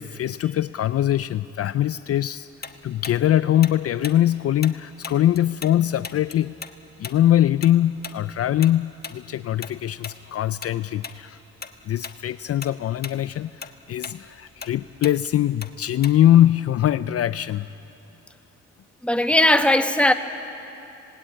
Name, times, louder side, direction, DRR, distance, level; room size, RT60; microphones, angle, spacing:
voice 1, 0.0-2.5 2.8-6.6 7.0-11.4 11.9-17.7, left 12 dB, 50° left, 14 dB, 0.5 m, -22 dB
Tick-tock, 2.6-5.8 6.0-10.7 11.0-11.2 11.6-12.2 12.5-16.4, left 5 dB, 30° left, 1.3 m, -38 dB
voice 2, 19.0-20.1, left 1 dB, 5° left, 7 dB, 1.4 m, -18 dB
26.5 x 19.5 x 8.9 m, 2.9 s
cardioid pair, 90°, 30 cm